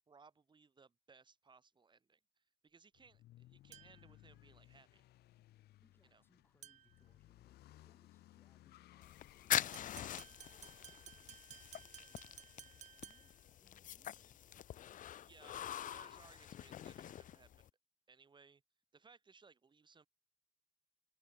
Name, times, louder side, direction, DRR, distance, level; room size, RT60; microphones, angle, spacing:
voice 1, 0.1-5.1 6.0-6.2 15.2-17.7 18.1-18.6 18.9-20.1, right 5 dB, 25° right, 6.0 m, -64 dB
sound 1, 2.9-9.6, left 15 dB, 70° left, 1.1 m, -62 dB
sound 2, 3.7-4.2 6.6-7.0 9.5-13.5, right 10 dB, 45° right, 0.6 m, -57 dB
voice 2, 5.8-11.4 11.7-14.5 15.3-15.6, left 2 dB, 10° left, 8.0 m, -75 dB
sound 3, 9.0-17.7, left 11 dB, 50° left, 0.9 m, -44 dB
cardioid pair, 110°, 17 cm